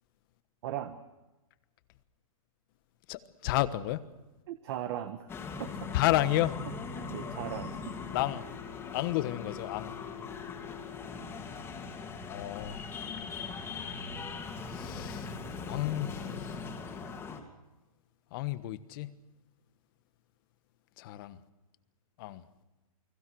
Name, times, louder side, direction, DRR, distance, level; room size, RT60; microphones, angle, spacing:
voice 1, 0.6-1.0 4.5-5.3 5.6-5.9 6.3-6.4 7.0-8.0, right 11 dB, 45° right, 8 dB, 1.6 m, -38 dB
voice 2, 3.1-4.0 5.9-6.6 8.1-8.4 8.9-10.0 12.3-12.8 14.7-16.6 18.3-19.1 21.0-21.4 22.2-22.4, left 15 dB, 35° left, 13 dB, 1.3 m, -31 dB
sound 1, 5.3-17.4, left 5 dB, 15° left, 2.7 m, -40 dB
29.5 x 21.0 x 6.4 m, 1.1 s
hypercardioid pair, 160°, 18 cm